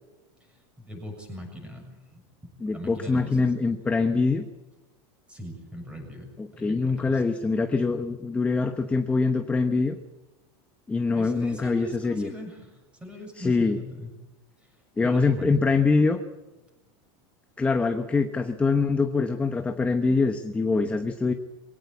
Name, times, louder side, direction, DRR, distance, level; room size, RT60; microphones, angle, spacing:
voice 1, 0.8-1.9 2.1-3.4 5.3-6.3 6.6-7.2 11.1-12.7 13.0-14.1 15.0-15.5, left 1 dB, 10° right, 3 dB, 7.0 m, -39 dB
voice 2, 2.6-4.4 6.4-10.0 10.9-12.3 13.4-13.8 15.0-16.2 17.6-21.3, left 4 dB, 10° left, 7 dB, 1.0 m, -24 dB
22.5 x 18.0 x 8.4 m, 1.1 s
supercardioid pair, 155°, 14 cm